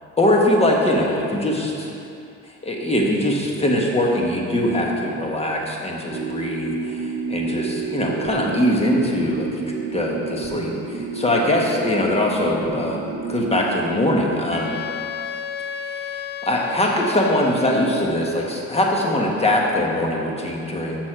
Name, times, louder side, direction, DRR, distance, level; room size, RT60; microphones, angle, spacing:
voice 1, 0.2-1.9 2.6-9.6 9.9-14.7 15.9-16.1 16.4-21.1, left 1 dB, 20° left, -1 dB, 1.3 m, -22 dB
sound 1, 6.1-14.8, right 3 dB, 30° right, 1.2 m, -29 dB
Wind instrument woodwind instrument, 14.5-18.3, left 8 dB, 35° left, 0.4 m, -32 dB
6.9 x 6.2 x 5.0 m, 2.6 s
cardioid pair, 90°, 30 cm